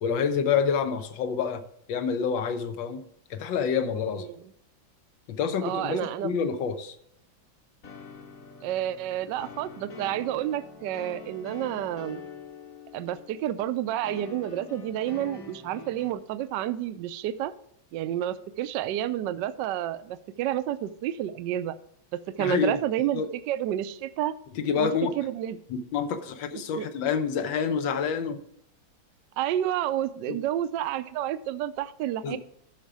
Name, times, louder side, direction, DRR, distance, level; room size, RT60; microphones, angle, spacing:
voice 1, 0.0-1.6 1.9-3.0 3.3-4.3 5.3-6.9 22.4-22.8 23.1-23.3 24.5-25.1 25.7-28.4 30.3-30.4 32.2-32.4, left 6 dB, 75° left, 10 dB, 1.6 m, -27 dB
voice 2, 4.2-4.5 5.6-6.3 8.6-12.2 12.9-17.5 17.9-21.7 22.1-24.3 24.8-24.9 25.2-25.6 26.7-26.9 29.4-32.4, right 12 dB, 70° right, 13 dB, 1.2 m, -30 dB
sound 1, 7.8-16.1, left 5 dB, 45° left, 1.8 m, -45 dB
12.5 x 5.0 x 4.8 m, 0.70 s
omnidirectional pair, 2.1 m